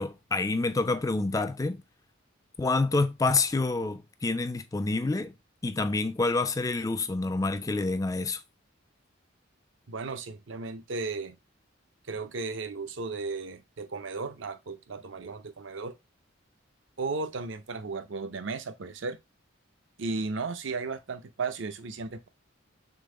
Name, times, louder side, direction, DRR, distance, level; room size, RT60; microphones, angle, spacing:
voice 1, 0.0-1.8 2.6-5.3 5.6-8.4, left 3 dB, 15° left, 0.3 m, -27 dB
voice 2, 9.9-11.4 12.1-16.0 17.0-19.2 20.0-22.3, right 4 dB, 70° right, 0.6 m, -35 dB
3.8 x 3.5 x 3.7 m
head